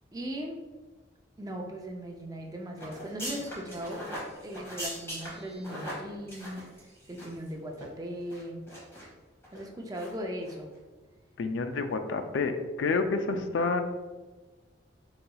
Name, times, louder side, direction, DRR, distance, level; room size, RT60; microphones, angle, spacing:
voice 1, 0.1-0.6 1.4-4.0 4.4-6.7 7.1-8.6 9.5-10.7, equal, 20° right, 1 dB, 0.4 m, -38 dB
sound 1, 2.8-7.5 7.7-7.9 8.3-9.0 9.4-9.6 9.9-10.1 10.4-10.5, equal, 15° left, 1.3 m, -40 dB
voice 2, 11.4-13.8, left 4 dB, 75° left, 8 dB, 0.3 m, -29 dB
4.0 x 3.9 x 2.3 m, 1.2 s
head